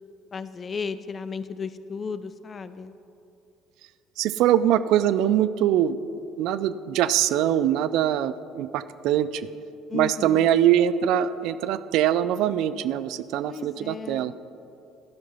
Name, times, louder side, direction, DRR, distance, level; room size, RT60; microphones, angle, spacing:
voice 1, 0.3-2.9 9.9-10.5 13.5-14.3, left 5 dB, 35° left, 13 dB, 0.6 m, -34 dB
voice 2, 4.2-6.0 6.4-9.5 9.9-14.3, right 11 dB, 70° right, 15 dB, 0.4 m, -23 dB
13.0 x 5.9 x 5.6 m, 2.6 s
hypercardioid pair, 65°, 0 cm